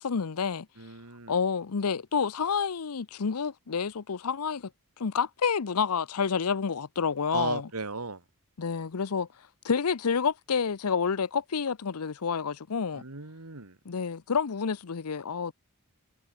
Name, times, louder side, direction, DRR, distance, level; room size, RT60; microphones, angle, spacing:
voice 1, 0.0-0.7 1.3-4.7 5.0-7.7 8.6-9.3 9.6-13.0 13.9-15.5, left 6 dB, 90° left, 0.7 m, -29 dB
voice 2, 0.8-1.3 7.3-8.2 13.0-13.7, right 3 dB, 80° right, 2.2 m, -36 dB
head